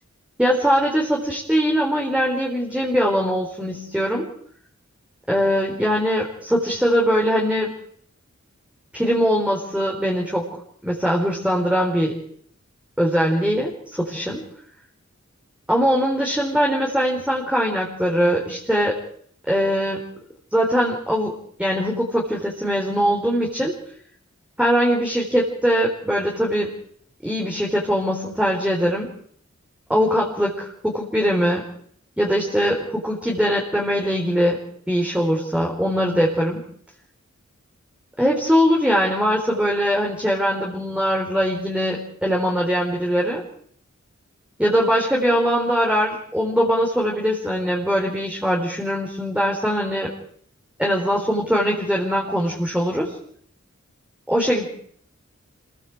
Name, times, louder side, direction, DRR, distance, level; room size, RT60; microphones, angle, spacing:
voice 1, 0.4-4.3 5.3-7.7 8.9-10.5 10.8-12.2 13.0-14.4 15.7-19.0 19.5-20.0 20.5-21.3 21.6-23.7 24.6-26.7 27.2-29.1 29.9-31.6 32.2-34.6 34.9-36.6 38.2-43.4 44.6-50.1 50.8-53.1 54.3-54.7, equal, 5° right, -2 dB, 4.3 m, -21 dB
26.5 x 23.0 x 4.8 m, 0.62 s
wide cardioid pair, 45°, 29 cm